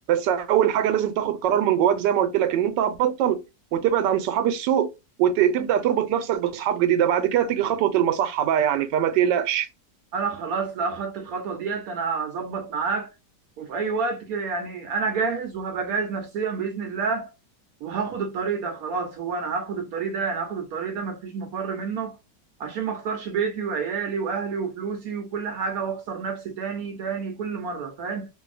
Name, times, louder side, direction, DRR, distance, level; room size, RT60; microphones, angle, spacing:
voice 1, 0.1-3.4 3.7-4.9 5.2-9.7, right 10 dB, 85° right, 1.2 m, -22 dB
voice 2, 10.1-13.1 13.6-17.3 17.8-22.2 22.6-28.3, right 5 dB, 70° right, 0.9 m, -29 dB
2.7 x 2.6 x 2.4 m
omnidirectional pair, 1.9 m